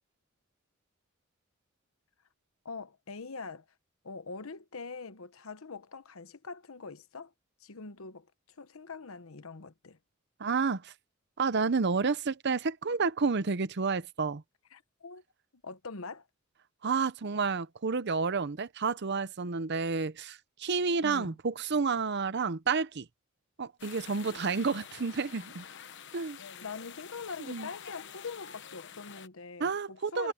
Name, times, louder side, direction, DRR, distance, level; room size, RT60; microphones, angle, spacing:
voice 1, 2.6-3.7 4.0-7.3 7.6-10.0 14.7-15.2 15.5-16.3 21.0-21.4 24.2-24.6 26.6-30.3, left 4 dB, 85° left, 1.1 m, -43 dB
voice 2, 10.4-10.9 11.4-14.4 16.8-23.1 23.6-25.6 26.1-26.4 27.5-27.7 29.6-30.3, right 4 dB, 55° right, 0.7 m, -30 dB
sound 1, 23.8-29.3, left 8 dB, 60° left, 1.1 m, -47 dB
head